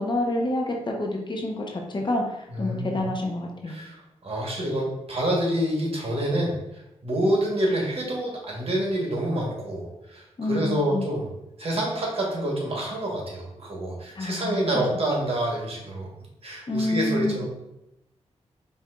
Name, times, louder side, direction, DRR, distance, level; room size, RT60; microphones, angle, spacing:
voice 1, 0.0-3.7 10.4-11.1 14.1-14.6 16.7-17.4, left 1 dB, 40° left, 0 dB, 0.8 m, -28 dB
voice 2, 2.5-3.0 3.7-4.0 4.2-6.6 7.0-11.3 11.6-16.1 16.4-17.4, right 1 dB, 55° right, -2 dB, 1.3 m, -27 dB
5.5 x 2.6 x 2.4 m, 0.87 s
cardioid pair, 65°, 12 cm